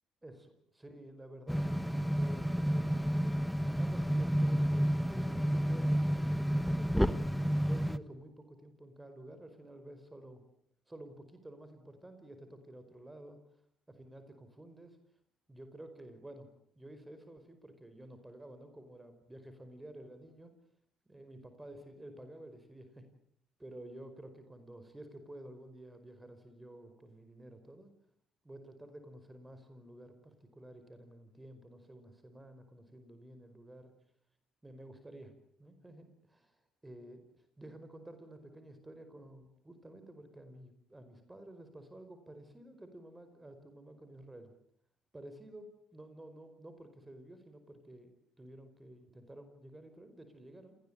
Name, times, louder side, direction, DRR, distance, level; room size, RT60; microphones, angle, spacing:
voice 1, 0.2-3.4 3.8-7.0 7.5-10.4 10.9-13.6 14.0-15.0 15.5-16.5 16.7-20.5 21.0-23.1 23.6-27.9 28.4-33.9 34.6-35.3 35.6-44.5 45.1-48.1 48.4-50.7, right 1 dB, 15° right, 9 dB, 5.0 m, -52 dB
sound 1, 1.5-8.0, equal, ahead, 1.3 m, -30 dB
27.0 x 18.5 x 8.8 m, 0.68 s
supercardioid pair, 65°, 0 cm